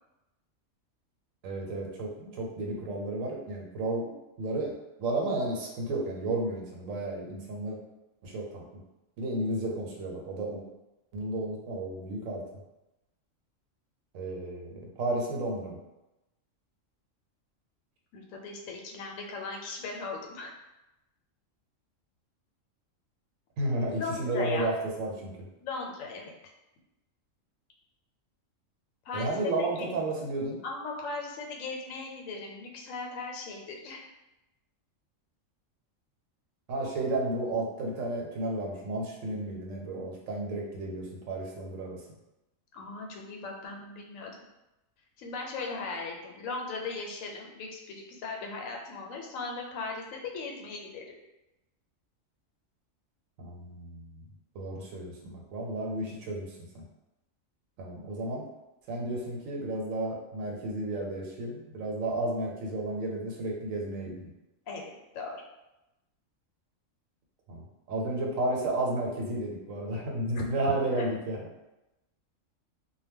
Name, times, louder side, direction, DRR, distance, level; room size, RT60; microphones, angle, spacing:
voice 1, 1.4-4.1 4.4-7.8 8.2-8.6 9.2-10.6 11.1-12.4 14.1-15.8 23.6-25.3 29.1-30.6 36.7-42.0 53.4-54.3 54.5-56.8 57.8-58.4 58.9-64.3 67.5-71.4, right 2 dB, 85° right, 0 dB, 1.0 m, -32 dB
voice 2, 18.1-20.5 23.9-24.7 25.6-26.3 29.0-29.9 30.6-34.0 42.7-44.3 45.2-51.1 64.7-65.4 70.3-70.4 71.0-71.1, left 3 dB, 90° left, 0 dB, 1.0 m, -38 dB
2.1 x 2.1 x 3.4 m, 0.96 s
omnidirectional pair, 1.3 m